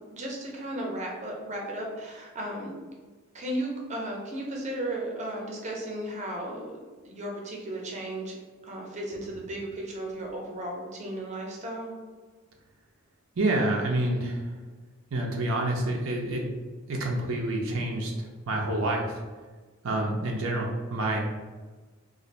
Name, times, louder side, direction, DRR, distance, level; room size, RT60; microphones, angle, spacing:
voice 1, 0.1-2.7 3.3-6.7 7.0-8.3 8.6-11.9, right 1 dB, 35° right, -1 dB, 0.6 m, -35 dB
voice 2, 13.4-14.5 15.1-16.5 16.9-19.2 19.8-21.2, right 1 dB, 75° right, 0 dB, 0.6 m, -28 dB
2.5 x 2.5 x 4.1 m, 1.4 s
head